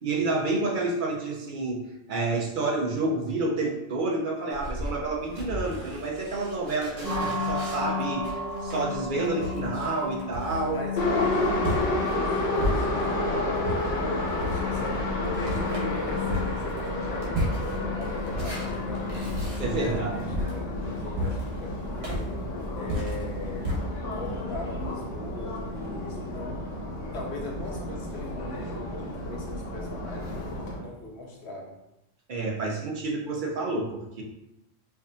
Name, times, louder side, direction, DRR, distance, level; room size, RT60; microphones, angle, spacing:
voice 1, 0.0-1.8 2.1-10.8 19.6-20.2 32.3-34.2, right 2 dB, 50° right, -1 dB, 0.7 m, -29 dB
sound 1, 4.5-13.2 13.6-23.8, equal, 85° right, 1.4 m, -34 dB
voice 2, 6.8-7.3 10.6-19.3 19.8-22.4 22.8-26.8 27.1-31.8, left 2 dB, 65° left, -1 dB, 0.9 m, -40 dB
sound 2, 7.0-26.8, left 4 dB, 15° right, 0.8 m, -36 dB
Subway metro underground, 11.0-30.8, left 1 dB, 80° left, 1.3 m, -31 dB
4.8 x 2.6 x 2.5 m, 0.89 s
omnidirectional pair, 1.3 m